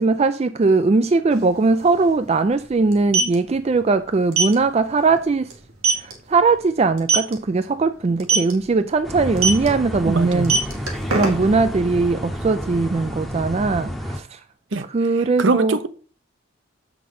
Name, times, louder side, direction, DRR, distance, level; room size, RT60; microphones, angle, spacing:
voice 1, 0.0-5.5 6.0-10.6 11.1-14.4 14.9-15.8, right 3 dB, 30° right, 0.3 m, -20 dB
sound 1, 1.3-1.4 1.6-1.8 2.9-3.3 4.3-4.5 5.0-5.2 5.5-5.6 5.8-6.1 7.0-7.3 8.2-8.5 9.4-9.7 10.3-11.6, right 4 dB, 85° right, 2.3 m, -19 dB
sound 2, 9.0-14.2, equal, ahead, 0.8 m, -30 dB
voice 2, 10.1-10.6 14.7-14.9 15.1-15.9, right 3 dB, 60° right, 0.7 m, -22 dB
7.4 x 6.0 x 5.3 m
head